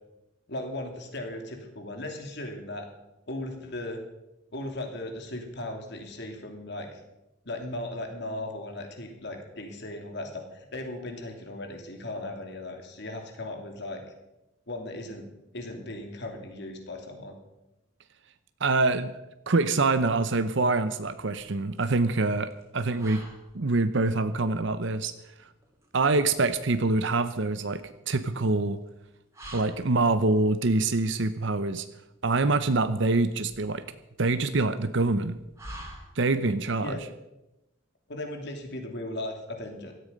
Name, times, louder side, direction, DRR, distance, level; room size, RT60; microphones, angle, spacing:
voice 1, 0.5-2.9 3.3-4.0 4.5-7.0 7.4-14.0 14.7-15.3 15.5-17.4 36.8-37.0 38.1-39.9, left 1 dB, 60° left, 4 dB, 2.8 m, -37 dB
voice 2, 18.6-19.2 19.5-23.3 23.5-25.1 25.9-28.8 29.5-31.8 32.2-33.8 34.2-35.4 36.2-37.0, right 3 dB, 65° right, 11 dB, 0.8 m, -25 dB
sound 1, 20.9-36.6, right 1 dB, 15° right, 3.3 m, -50 dB
16.5 x 13.5 x 5.3 m, 0.92 s
head